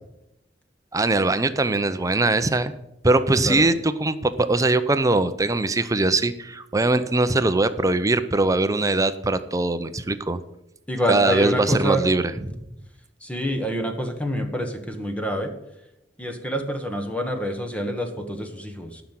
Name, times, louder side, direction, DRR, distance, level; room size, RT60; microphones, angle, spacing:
voice 1, 0.9-2.7 3.0-10.4 11.1-12.6, right 2 dB, 20° right, 11 dB, 0.6 m, -21 dB
voice 2, 10.9-12.0 13.2-15.5 16.2-19.0, equal, 10° left, 5 dB, 1.3 m, -27 dB
11.5 x 5.9 x 9.0 m, 0.86 s
head